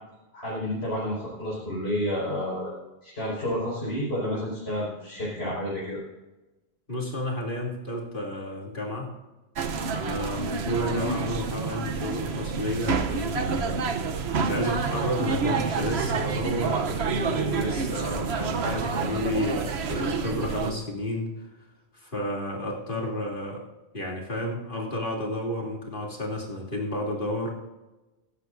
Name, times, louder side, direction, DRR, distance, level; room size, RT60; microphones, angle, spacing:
voice 1, 0.3-2.7 3.0-6.0, left 1 dB, 65° left, -8 dB, 5.6 m, -30 dB
voice 2, 6.9-9.2 9.9-13.8 14.4-21.3 21.9-23.6 23.9-27.5, left 1 dB, 50° left, -2 dB, 3.1 m, -31 dB
sound 1, 9.6-20.7, right 5 dB, 75° right, 1.1 m, -28 dB
16.5 x 13.5 x 2.6 m, 1.1 s
omnidirectional pair, 1.1 m